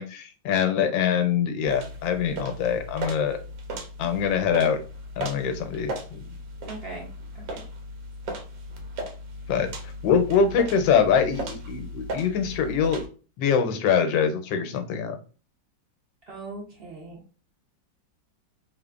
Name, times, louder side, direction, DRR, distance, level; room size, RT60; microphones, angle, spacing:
voice 1, 0.0-3.4 4.0-4.8 5.2-6.3 9.5-9.7 10.0-13.1 13.4-15.2, left 7 dB, 90° left, 6 dB, 1.3 m, -24 dB
sound 1, 1.6-13.1, right 1 dB, 80° right, 1.3 m, -37 dB
voice 2, 6.7-7.1 7.5-7.6 16.3-17.4, right 3 dB, 55° right, -2 dB, 0.6 m, -39 dB
3.3 x 2.0 x 2.3 m, 0.36 s
omnidirectional pair, 2.0 m